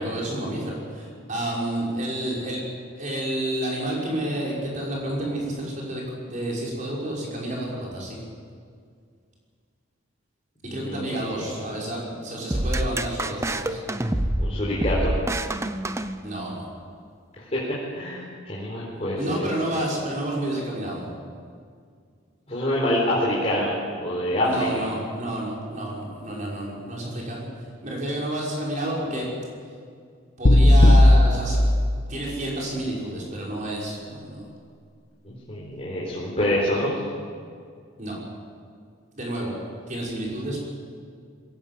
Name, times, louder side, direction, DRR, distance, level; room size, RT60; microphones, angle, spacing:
voice 1, 0.0-2.6 3.0-8.2 10.6-13.8 16.2-16.7 18.9-21.1 24.4-29.3 30.4-31.6 32.1-34.5 38.0-38.1 39.2-39.6 39.9-40.6, right 1 dB, 40° right, -4 dB, 6.2 m, -30 dB
voice 2, 10.7-11.5 14.4-15.1 17.5-17.6 17.9-19.5 22.5-24.7 35.2-37.0, left 1 dB, 30° left, -6 dB, 4.1 m, -26 dB
sound 1, 12.5-16.7, right 1 dB, 15° right, 0.7 m, -27 dB
sound 2, 30.5-32.6, left 1 dB, 60° left, 1.1 m, -16 dB
22.0 x 17.5 x 8.5 m, 2.2 s
head